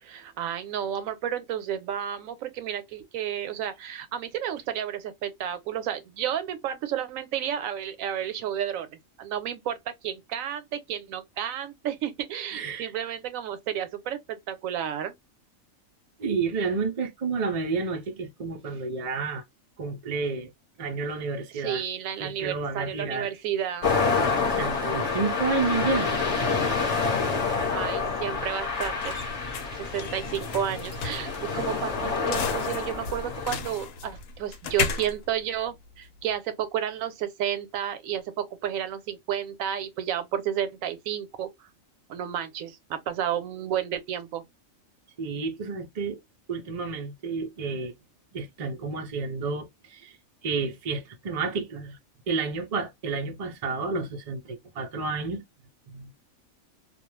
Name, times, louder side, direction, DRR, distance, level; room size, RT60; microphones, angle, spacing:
voice 1, 0.0-8.9 9.2-15.1 21.5-23.9 27.7-29.2 29.8-41.5 42.1-44.4, right 10 dB, 85° right, 1.0 m, -31 dB
voice 2, 12.5-12.9 16.2-19.4 19.8-20.5 20.8-21.8 22.2-23.4 24.4-26.1 45.2-46.2 46.5-47.9 48.3-50.1 50.4-52.0 52.3-55.4 55.9-56.1, right 4 dB, 60° right, 0.3 m, -30 dB
sound 1, 23.8-33.6, left 4 dB, 30° left, 0.7 m, -28 dB
sound 2, 27.7-36.3, left 5 dB, 90° left, 1.0 m, -36 dB
2.4 x 2.2 x 3.1 m
omnidirectional pair, 1.4 m